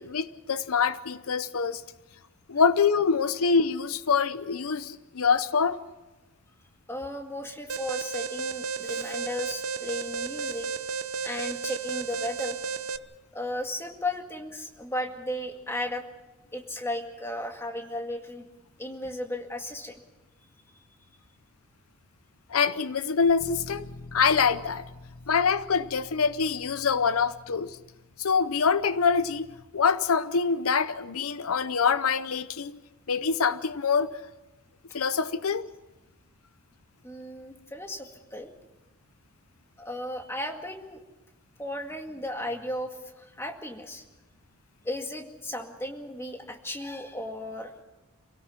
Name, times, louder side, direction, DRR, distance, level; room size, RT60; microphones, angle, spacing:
voice 1, 0.0-1.8 2.5-5.8 22.5-24.8 25.3-27.8 28.2-29.5 29.7-32.8 33.1-34.1 34.9-35.7, left 5 dB, 80° left, 0.7 m, -25 dB
voice 2, 6.9-10.7 11.2-12.6 13.3-16.0 16.5-18.5 18.8-20.0 37.0-38.5 39.8-41.0 41.6-44.0 44.8-47.8, left 1 dB, 10° left, 2.0 m, -35 dB
Alarm, 7.7-13.0, right 5 dB, 80° right, 0.9 m, -33 dB
Bass guitar, 23.4-29.6, left 2 dB, 60° left, 1.4 m, -47 dB
27.5 x 17.5 x 5.8 m
head